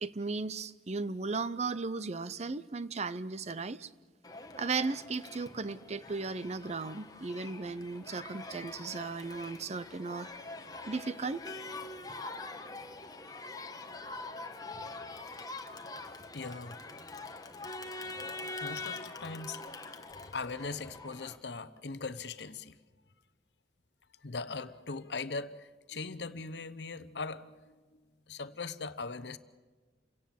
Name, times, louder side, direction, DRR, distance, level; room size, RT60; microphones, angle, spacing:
voice 1, 0.0-3.9 4.6-10.3 10.9-11.4, right 4 dB, 40° right, 0.6 m, -36 dB
Crowd, 4.2-21.4, left 3 dB, 20° left, 1.3 m, -44 dB
voice 2, 16.3-16.8 18.5-19.6 20.3-22.8 24.2-27.7 28.3-29.4, left 4 dB, 70° left, 0.9 m, -40 dB
28.5 x 17.5 x 7.6 m
head